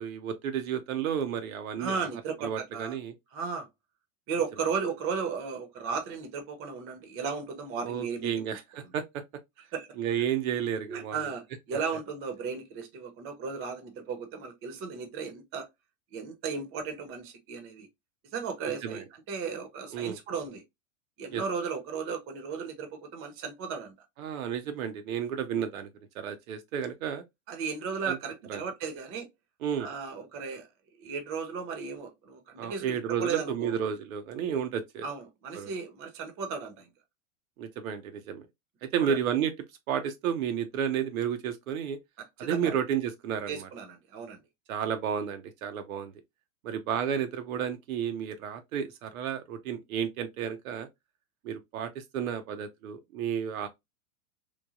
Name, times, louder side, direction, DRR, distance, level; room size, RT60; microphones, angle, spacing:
voice 1, 0.0-2.0 2.4-3.1 7.8-9.2 10.0-11.3 18.8-19.0 19.9-20.2 21.3-21.4 24.2-25.9 26.1-27.2 28.0-28.2 28.5-28.6 29.6-29.9 32.6-35.1 35.5-35.7 37.6-38.5 38.8-39.5 39.9-42.0 42.4-43.7 44.7-46.1 46.6-50.9 51.4-53.7, right 8 dB, 80° right, 0.7 m, -32 dB
voice 2, 1.8-3.0 3.3-3.7 4.3-8.3 9.7-9.9 10.9-15.7 16.1-17.9 18.3-20.6 21.2-23.9 27.5-29.3 29.8-30.7 31.0-33.7 35.0-36.9 39.0-39.2 42.4-42.7 43.5-44.4, right 5 dB, 30° right, 0.7 m, -35 dB
3.1 x 2.1 x 2.4 m
hypercardioid pair, 130°, 42 cm